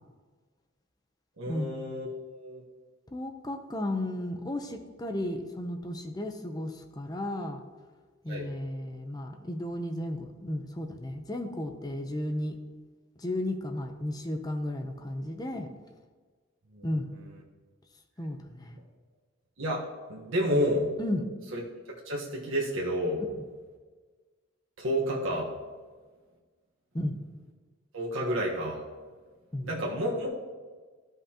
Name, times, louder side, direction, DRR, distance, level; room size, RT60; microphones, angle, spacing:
voice 1, 1.4-2.6 8.3-8.5 16.7-16.8 19.6-19.8 20.1-20.9 21.5-21.6 22.0-23.2 24.8-25.5 27.9-28.8 29.6-30.3, equal, 75° right, -4 dB, 1.3 m, -30 dB
voice 2, 3.1-7.6 8.2-12.6 13.2-15.7 16.8-17.1 18.2-18.8 20.5-20.6 21.0-21.3 23.3-23.4 26.9-27.2 29.5-29.7, left 1 dB, 20° left, 5 dB, 0.7 m, -34 dB
13.5 x 5.4 x 2.9 m, 1.4 s
head